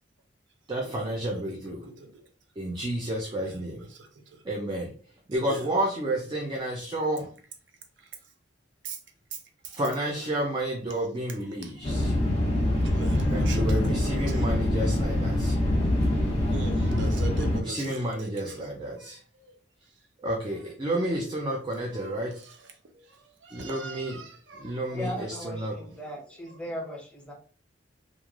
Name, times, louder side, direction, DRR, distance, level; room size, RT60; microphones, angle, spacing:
voice 1, 0.7-1.8 2.6-3.8 4.4-4.9 5.3-7.3 9.6-12.2 13.3-15.5 17.6-19.2 20.2-22.3 23.5-24.2 24.6-25.8, right 1 dB, 25° right, 0.4 m, -30 dB
voice 2, 1.3-1.7 5.3-5.6 8.8-9.0 11.6-11.7 12.8-14.4 16.5-18.7 19.0-19.5 22.0-22.1 23.4-24.7, right 3 dB, 75° right, 0.6 m, -40 dB
sound 1, 11.8-17.6, left 1 dB, 35° left, 0.9 m, -25 dB
voice 3, 24.9-27.3, equal, 5° left, 0.7 m, -37 dB
3.1 x 2.5 x 2.4 m
head